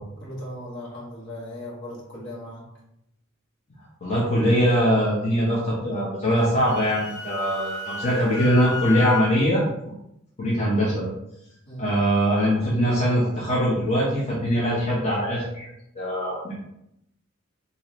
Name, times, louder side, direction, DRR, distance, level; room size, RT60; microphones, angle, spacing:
voice 1, 0.2-2.6 11.7-11.9, left 1 dB, 60° left, -5 dB, 1.5 m, -37 dB
voice 2, 4.0-9.6 10.4-11.1 11.8-15.7 15.9-16.5, equal, 30° left, -7 dB, 1.0 m, -22 dB
Wind instrument woodwind instrument, 6.4-9.3, left 4 dB, 15° left, 0.4 m, -33 dB
4.4 x 2.7 x 3.2 m, 0.82 s
head